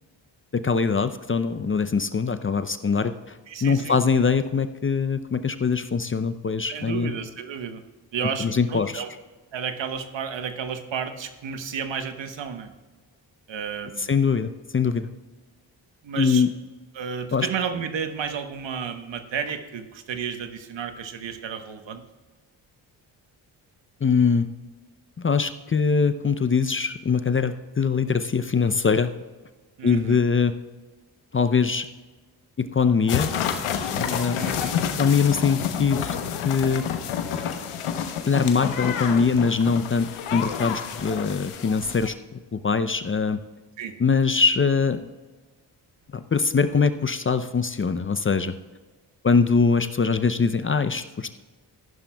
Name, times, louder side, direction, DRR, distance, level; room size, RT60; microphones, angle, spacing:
voice 1, 0.5-7.1 8.2-9.0 14.0-15.1 16.2-16.5 17.3-17.5 24.0-24.5 25.2-29.1 29.8-30.6 31.3-31.8 32.6-33.3 34.0-34.7 35.0-36.2 36.4-37.1 38.3-43.4 44.0-45.1 46.1-48.5 49.2-51.3, left 5 dB, 25° left, 11 dB, 0.6 m, -23 dB
voice 2, 3.5-4.0 6.7-7.8 8.1-9.1 9.5-12.7 13.5-14.1 16.0-16.4 16.9-22.0 29.8-30.2 34.3-34.7 43.8-43.9, right 7 dB, 65° right, 8 dB, 1.2 m, -32 dB
sound 1, 33.1-42.1, left 8 dB, 85° left, 1.0 m, -29 dB
14.5 x 11.0 x 2.3 m, 1.3 s
supercardioid pair, 45°, 49 cm